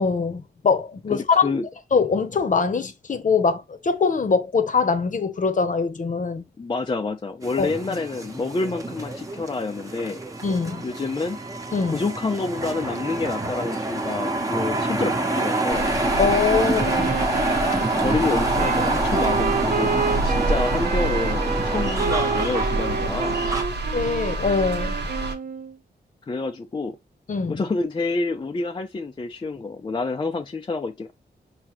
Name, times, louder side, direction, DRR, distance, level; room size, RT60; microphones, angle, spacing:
voice 1, 0.0-1.5 1.9-6.4 7.6-8.0 10.4-10.8 11.7-12.0 16.2-17.1 23.9-24.9 27.3-27.6, left 5 dB, 50° left, 0.9 m, -23 dB
voice 2, 1.1-1.7 6.6-10.2 10.8-11.4 11.9-15.9 17.8-19.9 20.2-23.4 26.3-27.0 27.5-31.1, left 3 dB, 25° left, 0.5 m, -28 dB
sound 1, 7.4-23.6, right 2 dB, 20° right, 1.0 m, -27 dB
sound 2, 15.7-25.3, right 2 dB, 90° right, 1.1 m, -28 dB
Wind instrument woodwind instrument, 16.8-25.7, right 5 dB, 55° right, 0.5 m, -29 dB
6.0 x 2.8 x 3.0 m
wide cardioid pair, 115°, 17 cm